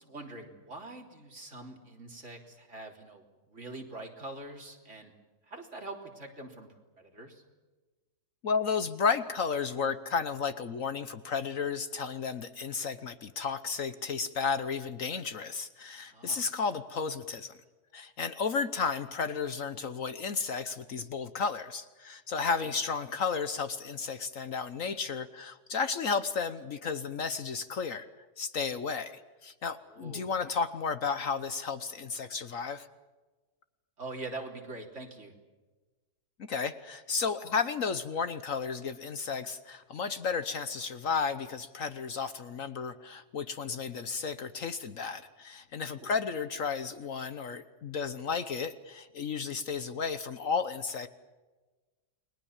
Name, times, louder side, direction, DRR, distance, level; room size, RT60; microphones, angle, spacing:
voice 1, 0.0-5.1 5.4-6.7 7.0-7.4 16.1-16.4 22.4-22.7 29.9-30.3 34.0-35.3 45.9-46.1, right 2 dB, 45° right, 2 dB, 3.8 m, -44 dB
voice 2, 8.4-17.6 17.9-28.1 28.4-32.9 36.5-51.1, left 5 dB, 60° left, 12 dB, 1.3 m, -33 dB
30.0 x 21.5 x 7.3 m, 1.3 s
omnidirectional pair, 1.7 m